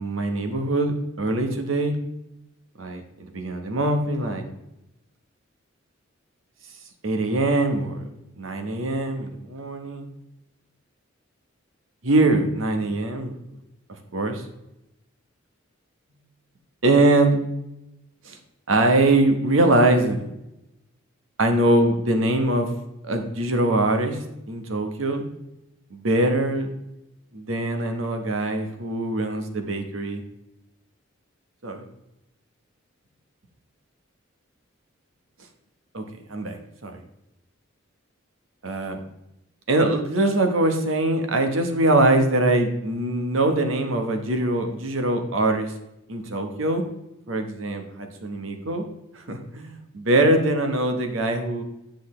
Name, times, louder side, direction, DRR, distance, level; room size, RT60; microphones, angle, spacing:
voice 1, 0.0-1.9 2.8-3.0 3.3-4.4 7.0-10.1 12.0-13.3 14.1-14.4 16.8-17.4 18.2-18.4 18.7-20.3 21.4-22.7 23.0-25.3 25.9-26.7 27.3-30.2 31.6-31.8 35.9-36.0 36.3-36.9 38.6-39.0 39.7-45.7 46.1-46.8 47.3-48.8 49.1-51.6, right 2 dB, 75° right, 5 dB, 1.1 m, -22 dB
7.9 x 6.4 x 3.2 m, 0.89 s
head